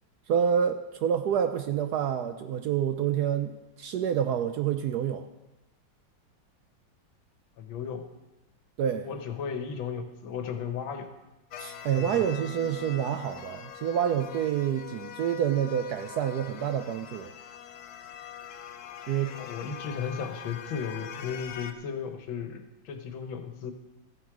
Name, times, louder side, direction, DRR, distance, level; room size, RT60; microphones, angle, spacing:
voice 1, 0.3-5.2 8.8-9.1 11.6-17.3 19.1-19.4, right 9 dB, 70° right, 8 dB, 1.0 m, -28 dB
voice 2, 7.6-8.1 9.0-11.1 11.9-12.2 19.3-23.7, left 6 dB, 85° left, 6 dB, 1.8 m, -35 dB
sound 1, 11.5-21.7, left 8 dB, 60° left, 1.1 m, -43 dB
15.0 x 7.8 x 4.9 m, 1.0 s
omnidirectional pair, 2.1 m